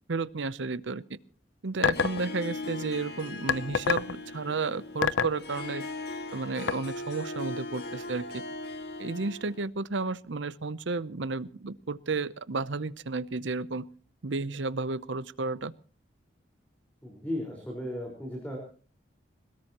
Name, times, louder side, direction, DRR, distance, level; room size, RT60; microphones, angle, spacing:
voice 1, 0.1-1.0 1.6-5.8 6.3-8.4 9.0-13.9 14.2-15.7, right 3 dB, 75° right, 17 dB, 0.7 m, -32 dB
Harp, 1.7-9.6, left 2 dB, 55° left, 1.9 m, -39 dB
sound 1, 1.8-2.2 3.5-4.1 5.0-5.4 6.7-6.8, left 6 dB, 80° left, 0.7 m, -25 dB
voice 2, 17.0-18.6, left 1 dB, 10° left, 0 dB, 4.8 m, -35 dB
22.0 x 20.0 x 3.0 m, 0.39 s
head